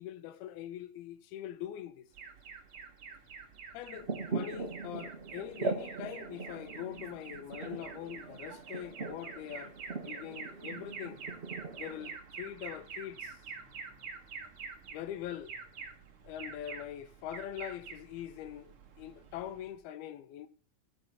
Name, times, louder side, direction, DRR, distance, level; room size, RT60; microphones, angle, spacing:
voice 1, 0.0-2.1 3.7-9.7 10.0-11.2 11.7-13.4 14.9-15.5 16.2-20.5, left 11 dB, 90° left, 2.8 m, -43 dB
Alarm, 2.1-19.8, right 5 dB, 45° right, 2.0 m, -47 dB
sound 1, 3.9-12.2, right 4 dB, 65° right, 0.6 m, -41 dB
14.0 x 6.7 x 7.1 m
omnidirectional pair, 4.3 m